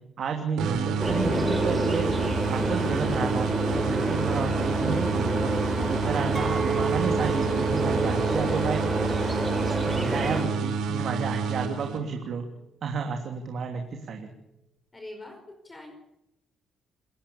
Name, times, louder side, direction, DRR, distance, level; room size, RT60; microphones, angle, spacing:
voice 1, 0.2-2.1 2.5-5.6 5.9-8.8 9.8-12.4 12.8-14.3, right 5 dB, 60° right, 4 dB, 3.0 m, -31 dB
sound 1, 0.6-12.3, right 5 dB, 85° right, 3.8 m, -30 dB
sound 2, 1.0-10.4, right 1 dB, 10° right, 6.6 m, -28 dB
Chink clink, 6.3-11.5, right 6 dB, 25° right, 3.2 m, -34 dB
voice 2, 8.0-8.7 14.9-15.9, left 2 dB, 25° left, 4 dB, 4.9 m, -42 dB
28.5 x 16.0 x 7.2 m, 0.83 s
cardioid pair, 90°, 0 cm